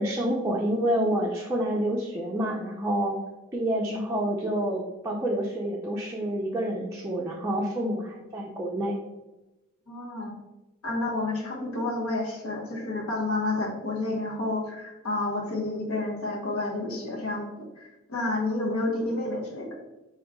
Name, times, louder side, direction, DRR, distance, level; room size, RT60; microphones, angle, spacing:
voice 1, 0.0-3.2 3.5-9.0, right 1 dB, 15° right, -3 dB, 0.4 m, -28 dB
voice 2, 9.9-10.3 10.8-19.7, left 2 dB, 75° left, -2 dB, 1.1 m, -30 dB
4.9 x 3.0 x 3.6 m, 1.0 s
head